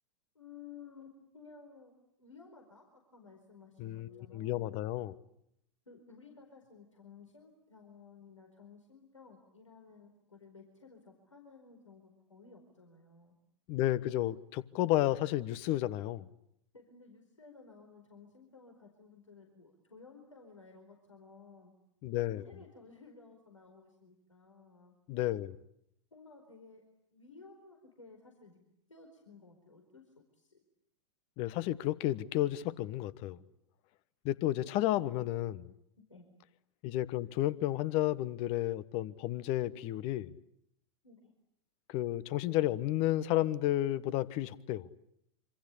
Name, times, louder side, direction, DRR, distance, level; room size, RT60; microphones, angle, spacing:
voice 1, 0.3-1.9 2.2-4.7 5.9-13.4 16.7-21.7 22.1-24.9 26.1-26.8 27.1-28.6 28.9-30.6 36.1-36.3 41.0-41.3, left 5 dB, 85° left, 4.6 m, -56 dB
voice 2, 3.8-5.2 13.7-16.3 22.0-22.5 25.1-25.6 31.4-33.4 34.2-35.7 36.8-40.3 41.9-44.9, left 14 dB, 40° left, 1.3 m, -32 dB
26.5 x 26.0 x 8.5 m
figure-of-eight pair, 100°, 16 cm